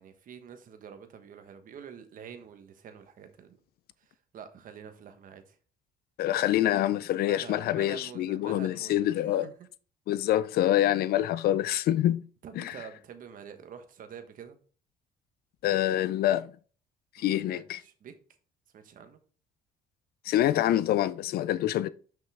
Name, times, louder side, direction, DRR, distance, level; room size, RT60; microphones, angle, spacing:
voice 1, 0.0-3.6 4.0-5.6 7.2-9.5 12.4-14.6 17.2-18.1 18.7-19.2, right 7 dB, 55° right, 1.2 m, -47 dB
voice 2, 6.2-9.5 10.1-12.2 12.6-12.7 15.6-16.5 17.2-17.8 20.2-21.9, left 13 dB, 65° left, 0.5 m, -26 dB
5.9 x 5.5 x 3.4 m
cardioid pair, 110°, 17 cm